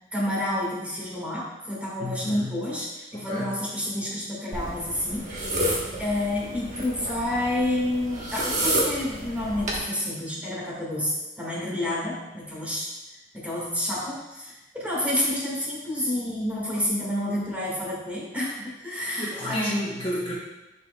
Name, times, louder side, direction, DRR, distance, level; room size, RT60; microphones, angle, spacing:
voice 1, 0.1-12.9 13.3-19.8, left 1 dB, 10° right, -6 dB, 1.7 m, -29 dB
voice 2, 2.0-2.6 3.1-3.6 18.9-20.3, left 1 dB, 30° left, -5 dB, 0.9 m, -30 dB
sound 1, 4.5-9.8, right 1 dB, 45° right, 1.2 m, -30 dB
9.9 x 4.2 x 2.2 m, 1.0 s
head